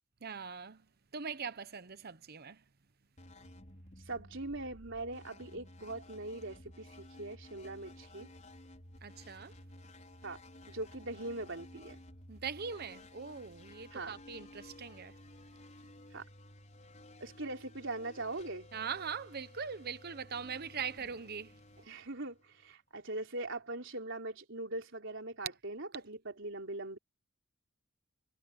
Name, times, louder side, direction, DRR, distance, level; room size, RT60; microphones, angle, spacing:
voice 1, 0.2-0.9 1.1-2.6 9.0-9.5 12.3-15.2 18.7-21.6, right 6 dB, 50° right, 0.9 m, -41 dB
sound 1, 3.2-22.7, left 1 dB, 35° left, 5.7 m, -55 dB
voice 2, 4.1-8.3 10.2-10.4 10.7-12.0 13.9-14.2 16.1-16.2 17.2-18.7 21.9-27.0, right 2 dB, 65° right, 3.9 m, -41 dB
head